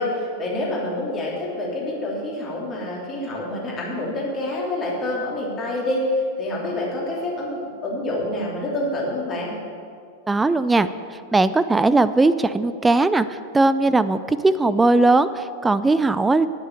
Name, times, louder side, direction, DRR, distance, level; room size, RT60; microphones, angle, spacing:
voice 1, 0.0-9.5, left 1 dB, 25° left, -4 dB, 3.2 m, -27 dB
voice 2, 10.3-10.9 11.3-16.5, right 2 dB, 10° right, 13 dB, 0.4 m, -19 dB
9.8 x 8.2 x 6.8 m, 2.4 s
figure-of-eight pair, 90°, 0 cm